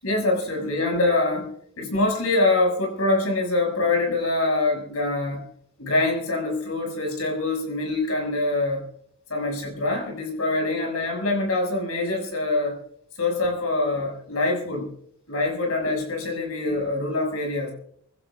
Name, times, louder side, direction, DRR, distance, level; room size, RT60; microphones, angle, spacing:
voice 1, 0.0-1.5 1.8-5.4 5.8-8.8 9.3-12.8 13.2-14.9 15.3-17.7, left 2 dB, 75° left, 1 dB, 6.4 m, -24 dB
25.0 x 16.0 x 2.5 m, 0.66 s
head